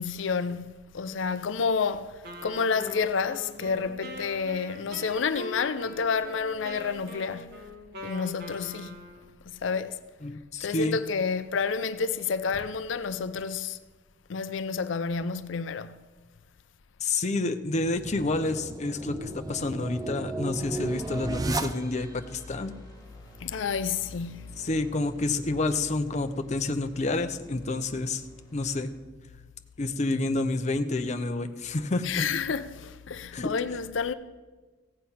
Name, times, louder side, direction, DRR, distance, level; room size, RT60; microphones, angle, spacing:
voice 1, 0.0-7.6 8.0-9.0 9.5-10.0 10.6-13.8 14.3-16.0 23.4-24.5 32.0-34.1, left 5 dB, 85° left, 0.5 m, -30 dB
Wind instrument woodwind instrument, 2.2-9.4, equal, 60° right, 1.4 m, -43 dB
voice 2, 10.2-11.0 17.0-22.7 24.6-28.2 28.5-28.9 29.8-32.2 33.3-33.5, left 2 dB, 40° left, 0.7 m, -29 dB
sound 1, 17.7-22.2, right 2 dB, 20° right, 0.5 m, -34 dB
sound 2, 20.5-29.0, left 1 dB, 20° left, 1.8 m, -48 dB
16.0 x 7.6 x 5.7 m
head